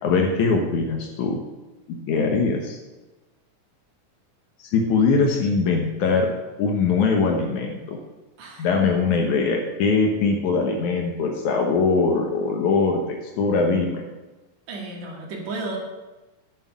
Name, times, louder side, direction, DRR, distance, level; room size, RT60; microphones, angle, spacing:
voice 1, 0.0-1.4 1.9-2.8 4.7-6.3 6.6-8.0 8.6-13.0 13.4-14.0, left 4 dB, 75° left, 2 dB, 2.5 m, -21 dB
voice 2, 14.7-15.8, right 2 dB, 65° right, -2 dB, 3.3 m, -33 dB
8.6 x 7.3 x 8.5 m, 1.1 s
omnidirectional pair, 3.5 m